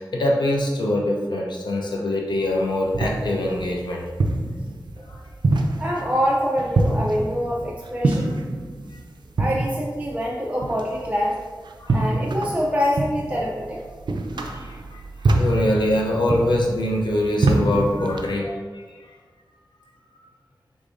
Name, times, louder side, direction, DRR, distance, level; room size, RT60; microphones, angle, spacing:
voice 1, 0.0-4.0 5.1-5.2 11.8-12.1 14.3-19.0, left 1 dB, 85° left, -1 dB, 0.6 m, -24 dB
sound 1, 2.4-18.3, right 2 dB, 80° right, 0.4 m, -26 dB
voice 2, 5.8-8.4 9.4-11.4 11.9-13.9, equal, 20° right, -4 dB, 0.5 m, -25 dB
5.2 x 3.5 x 2.5 m, 1.5 s
wide cardioid pair, 85°, 8 cm